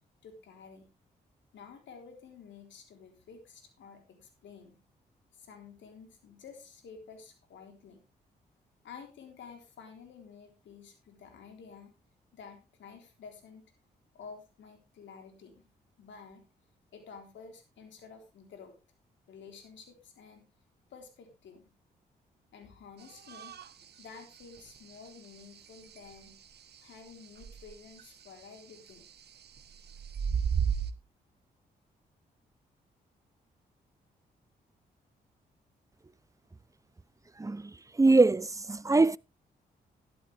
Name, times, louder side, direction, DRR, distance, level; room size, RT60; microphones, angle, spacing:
voice 1, 0.2-0.9 1.5-4.8 5.3-8.0 8.8-11.9 12.3-13.6 14.1-15.7 16.0-16.5 16.9-18.8 19.3-20.5 20.9-21.7 22.5-23.5 24.0-26.4 26.8-29.1, left 5 dB, 75° left, 3.8 m, -51 dB
sound 1, 23.1-23.7 24.0-24.1 24.6-25.1 25.9-26.0 27.4-28.0 29.6-30.9, right 7 dB, 60° right, 1.2 m, -32 dB
voice 2, 37.4-39.2, right 3 dB, 15° right, 0.6 m, -24 dB
12.5 x 12.0 x 3.4 m
supercardioid pair, 45°, 19 cm